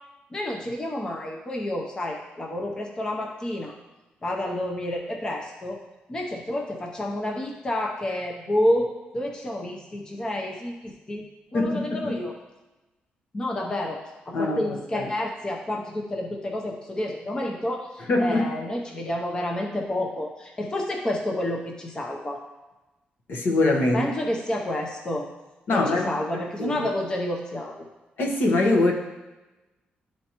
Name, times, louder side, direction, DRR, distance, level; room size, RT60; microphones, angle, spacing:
voice 1, 0.3-3.8 4.2-5.8 6.1-11.3 11.5-12.4 13.3-14.0 14.3-22.4 23.9-25.3 25.7-27.7, left 1 dB, 20° left, 0 dB, 0.7 m, -29 dB
voice 2, 11.5-12.1 14.3-15.1 18.1-18.5 23.3-24.1 25.7-26.9 28.2-28.9, left 2 dB, 65° left, 0 dB, 1.1 m, -23 dB
11.5 x 4.4 x 3.0 m, 1.1 s
wide cardioid pair, 150°, 3 cm